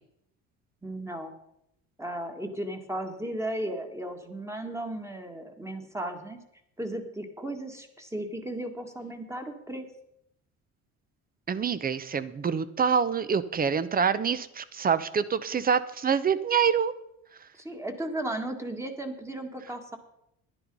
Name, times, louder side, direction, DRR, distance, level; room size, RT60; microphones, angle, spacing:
voice 1, 0.8-1.3 2.0-6.4 6.8-9.9 17.5-20.0, right 1 dB, 10° right, 5 dB, 1.7 m, -35 dB
voice 2, 11.5-16.9, right 7 dB, 25° right, 15 dB, 0.8 m, -26 dB
11.0 x 10.0 x 5.4 m, 0.80 s
cardioid pair, 110°, 33 cm